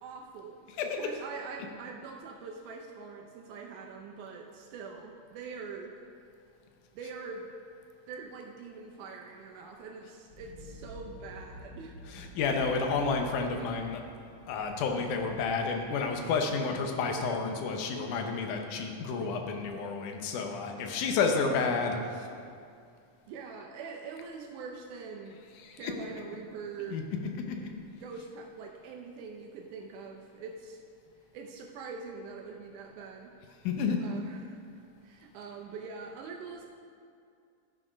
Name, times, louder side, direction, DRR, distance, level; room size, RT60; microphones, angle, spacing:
voice 1, 0.0-6.0 6.9-7.5 8.1-12.0 23.3-25.4 25.7-27.0 27.9-30.8 31.3-33.3 34.0-34.6 35.0-36.7, right 5 dB, 80° right, 1 dB, 2.2 m, -43 dB
sound 1, 10.3-18.5, right 1 dB, 15° left, 2.3 m, -51 dB
voice 2, 12.1-14.0 14.5-22.3 25.6-25.9 26.9-27.0 27.5-27.7 33.6-34.1, left 4 dB, 85° left, 3 dB, 2.4 m, -30 dB
11.5 x 6.4 x 5.0 m, 2.4 s
omnidirectional pair, 3.5 m